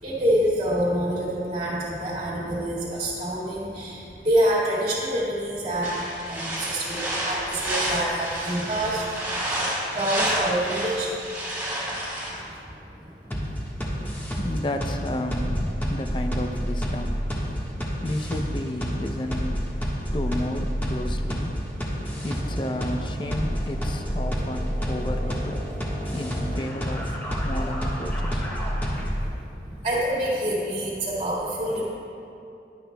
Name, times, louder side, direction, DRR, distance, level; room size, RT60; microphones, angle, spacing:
voice 1, 0.0-9.1 9.9-11.1 13.9-14.1 28.9-29.2 29.8-31.8, right 1 dB, 30° right, -7 dB, 1.9 m, -26 dB
sound 1, 5.8-12.3, right 1 dB, 10° right, 2.5 m, -29 dB
sound 2, 13.3-29.3, equal, 10° left, 1.4 m, -29 dB
voice 2, 14.4-19.9 20.1-21.6 22.2-25.6 26.1-27.2 27.4-28.5, left 1 dB, 25° left, 5 dB, 0.5 m, -32 dB
16.5 x 11.0 x 2.3 m, 2.7 s
head